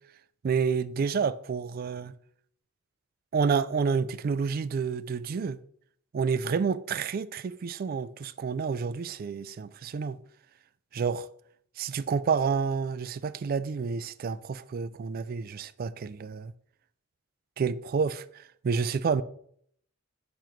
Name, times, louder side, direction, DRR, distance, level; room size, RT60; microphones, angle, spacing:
voice 1, 0.4-2.1 3.3-5.6 6.1-10.2 10.9-11.3 11.8-16.5 17.6-19.2, right 5 dB, 45° right, 0.3 m, -29 dB
7.0 x 3.1 x 5.8 m
head